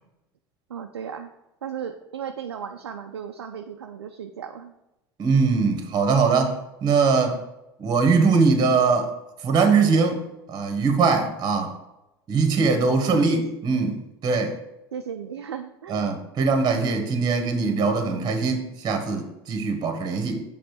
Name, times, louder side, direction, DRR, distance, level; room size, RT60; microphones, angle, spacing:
voice 1, 0.7-1.3 1.6-4.7 13.1-13.4 14.9-16.1, right 8 dB, 75° right, 5 dB, 0.5 m, -35 dB
voice 2, 5.2-7.4 7.8-9.1 9.4-10.2 10.5-11.7 12.3-14.0 14.2-14.5 15.9-20.4, right 4 dB, 30° right, 5 dB, 1.4 m, -21 dB
7.9 x 3.7 x 6.6 m, 0.91 s
figure-of-eight pair, 70°, 13 cm